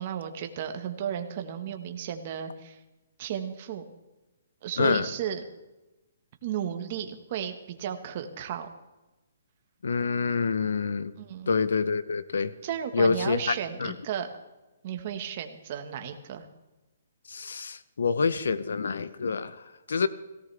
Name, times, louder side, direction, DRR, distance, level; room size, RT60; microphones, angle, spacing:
voice 1, 0.0-2.8 3.2-3.8 4.6-5.4 6.4-8.7 11.2-11.5 12.6-14.3 14.8-16.5, right 9 dB, 35° right, 6 dB, 1.5 m, -34 dB
voice 2, 9.8-11.1 11.5-12.5 12.9-13.9 17.3-19.6 19.9-20.1, left 5 dB, 85° left, 15 dB, 0.9 m, -27 dB
17.5 x 17.0 x 3.5 m, 1.1 s
hypercardioid pair, 165°, 0 cm